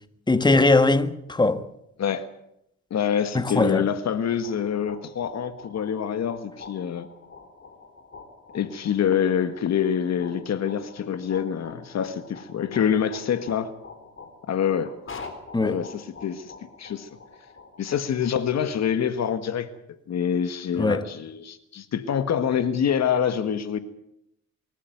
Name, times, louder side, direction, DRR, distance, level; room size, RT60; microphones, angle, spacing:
voice 1, 0.3-1.6 3.4-3.9 15.5-15.8 20.8-21.0, left 2 dB, 15° left, 1.7 m, -20 dB
voice 2, 2.9-7.1 8.5-13.7 14.5-14.9 15.6-16.5 16.8-17.1 17.8-19.7 20.1-23.8, left 8 dB, 60° left, 1.7 m, -26 dB
sound 1, 4.3-18.3, left 4 dB, 40° left, 4.0 m, -45 dB
25.0 x 14.0 x 9.4 m
cardioid pair, 90°, 30 cm